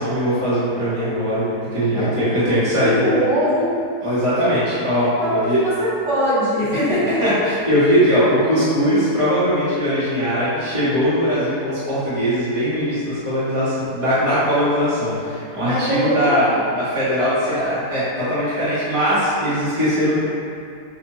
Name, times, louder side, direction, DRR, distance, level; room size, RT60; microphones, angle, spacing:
voice 1, 0.0-3.0 4.0-5.6 7.2-20.2, equal, 20° right, -13 dB, 1.3 m, -20 dB
voice 2, 1.9-3.8 4.4-4.5 5.2-7.4 15.6-16.6, equal, 50° right, -12 dB, 1.9 m, -22 dB
6.6 x 2.7 x 2.8 m, 2.4 s
omnidirectional pair, 1.7 m